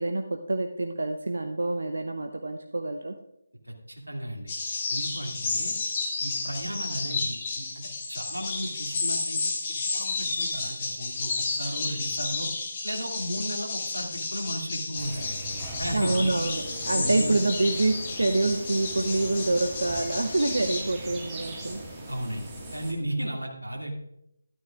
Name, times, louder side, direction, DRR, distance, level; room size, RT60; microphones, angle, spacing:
voice 1, 0.0-3.1 15.9-21.9, right 2 dB, 65° right, 6 dB, 0.7 m, -26 dB
voice 2, 3.7-4.5 4.9-5.8 6.2-9.4 9.7-12.5 12.8-15.3 15.8-16.3 16.9-17.3 22.1-23.9, equal, 80° right, 0 dB, 2.4 m, -34 dB
sound 1, 4.5-20.8, left 3 dB, 25° left, 1.8 m, -32 dB
sound 2, 15.0-22.9, right 1 dB, 15° right, 1.7 m, -40 dB
12.5 x 12.5 x 2.5 m, 0.81 s
figure-of-eight pair, 155°, 0 cm